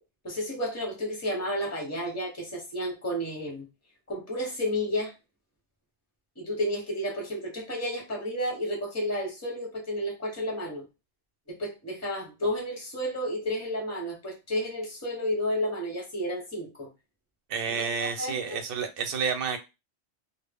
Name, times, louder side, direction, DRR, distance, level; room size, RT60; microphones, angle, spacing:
voice 1, 0.2-3.7 4.1-5.1 6.4-10.8 11.5-16.9 17.8-18.4, equal, 15° left, 0.8 m, -31 dB
voice 2, 17.5-19.6, right 6 dB, 60° right, 0.7 m, -30 dB
2.0 x 2.0 x 3.4 m
omnidirectional pair, 1.2 m